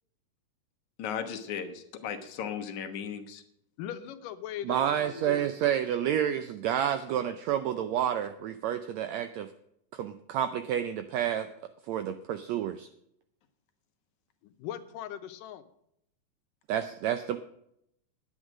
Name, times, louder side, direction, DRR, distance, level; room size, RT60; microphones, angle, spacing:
voice 1, 1.0-3.4, left 7 dB, 70° left, 7 dB, 2.4 m, -36 dB
voice 2, 3.8-5.5 14.4-15.6, left 10 dB, 85° left, 9 dB, 2.5 m, -39 dB
voice 3, 4.6-9.5 9.9-11.5 11.9-12.9 16.7-17.4, right 10 dB, 80° right, 10 dB, 1.6 m, -29 dB
10.5 x 8.8 x 6.2 m, 0.74 s
omnidirectional pair, 3.8 m